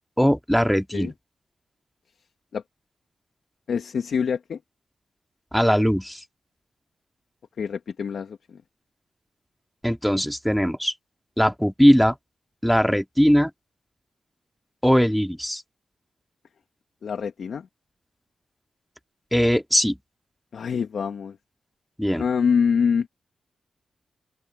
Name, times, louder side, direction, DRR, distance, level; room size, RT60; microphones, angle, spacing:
voice 1, 0.2-1.1 5.5-6.2 9.8-10.9 11.4-12.2 12.6-13.5 14.8-15.6 19.3-20.0 22.0-22.2, equal, ahead, 2.4 m, -20 dB
voice 2, 3.7-4.6 7.6-8.6 17.0-17.7 20.5-21.4 22.2-23.1, left 6 dB, 75° left, 1.7 m, -25 dB
open air
supercardioid pair, 40°, 0 cm